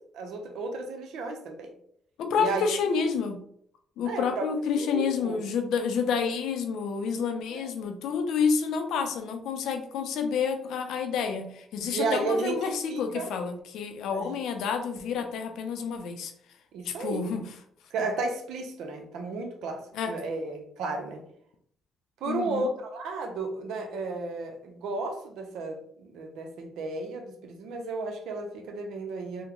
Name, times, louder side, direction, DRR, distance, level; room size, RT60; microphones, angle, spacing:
voice 1, 0.1-1.7 2.4-2.7 4.1-4.5 4.8-5.4 7.6-7.7 11.9-13.3 14.1-14.3 16.7-17.3 17.9-21.2 22.2-29.4, right 3 dB, 85° right, 0.6 m, -33 dB
voice 2, 2.2-3.4 4.0-16.3 16.8-17.4 19.9-20.1 22.2-22.7, left 6 dB, 85° left, 0.5 m, -29 dB
3.6 x 2.1 x 3.0 m
cardioid pair, 90°, 0 cm